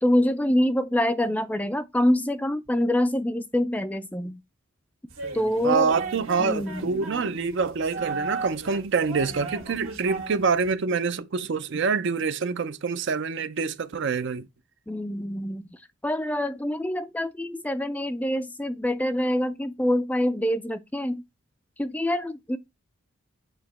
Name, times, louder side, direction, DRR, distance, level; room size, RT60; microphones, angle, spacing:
voice 1, 0.0-4.4 5.3-5.9 6.4-6.9 14.9-15.7 16.0-21.2 21.8-22.6, left 1 dB, 5° left, 0.4 m, -25 dB
sound 1, 5.1-10.7, right 3 dB, 80° right, 1.9 m, -36 dB
voice 2, 5.6-14.5, right 5 dB, 60° right, 0.5 m, -26 dB
8.0 x 2.9 x 4.1 m
head